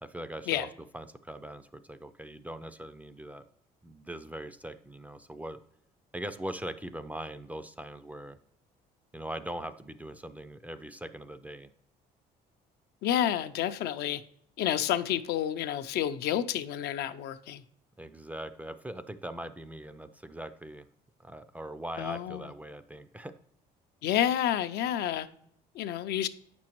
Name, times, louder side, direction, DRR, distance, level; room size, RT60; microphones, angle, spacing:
voice 1, 0.0-3.5 3.8-5.6 6.1-8.4 9.1-11.7 18.0-20.9 21.2-23.3, right 1 dB, 10° right, 0.3 m, -41 dB
voice 2, 13.0-14.2 14.6-17.6 22.0-22.5 24.0-25.3 25.7-26.3, left 11 dB, 75° left, 0.5 m, -29 dB
8.4 x 6.1 x 3.0 m
cardioid pair, 110°, 17 cm